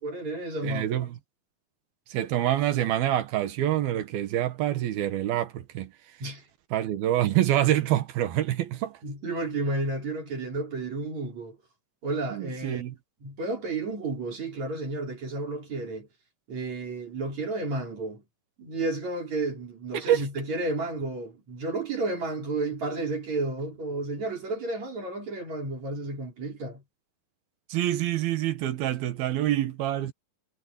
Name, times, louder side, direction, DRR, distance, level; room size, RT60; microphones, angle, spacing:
voice 1, 0.0-0.9 6.2-6.4 9.0-11.6 12.0-12.8 13.2-16.1 16.5-18.2 18.6-26.8, right 2 dB, 50° right, 6.1 m, -32 dB
voice 2, 0.6-1.1 2.1-5.9 6.7-9.0 12.3-12.9 19.9-20.2 27.7-30.1, right 12 dB, 80° right, 3.3 m, -26 dB
omnidirectional pair, 4.3 m